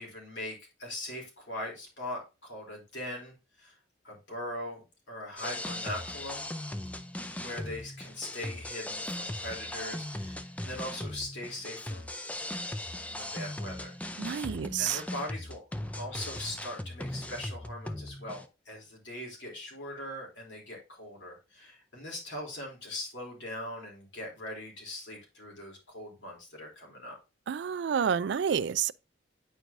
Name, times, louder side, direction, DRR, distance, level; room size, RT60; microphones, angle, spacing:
voice 1, 0.0-3.8 4.0-6.5 7.4-12.1 13.1-14.0 14.4-14.5 14.8-15.6 15.9-27.2, left 1 dB, 65° left, 3.1 m, -41 dB
sound 1, 5.4-18.4, left 1 dB, 5° left, 0.4 m, -38 dB
voice 2, 14.2-15.0 27.5-28.9, right 8 dB, 60° right, 0.3 m, -29 dB
9.1 x 4.6 x 2.6 m
head